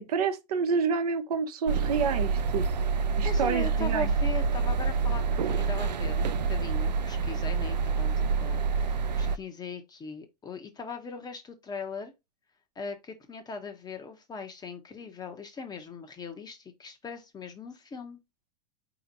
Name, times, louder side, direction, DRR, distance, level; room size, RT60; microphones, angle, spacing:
voice 1, 0.0-2.7 3.2-4.1, right 6 dB, 65° right, 0.9 m, -28 dB
sound 1, 1.7-9.4, right 5 dB, 80° right, 0.5 m, -27 dB
voice 2, 3.2-12.1 12.8-18.2, left 4 dB, 20° left, 0.9 m, -39 dB
4.2 x 2.9 x 4.0 m
figure-of-eight pair, 90°, 21 cm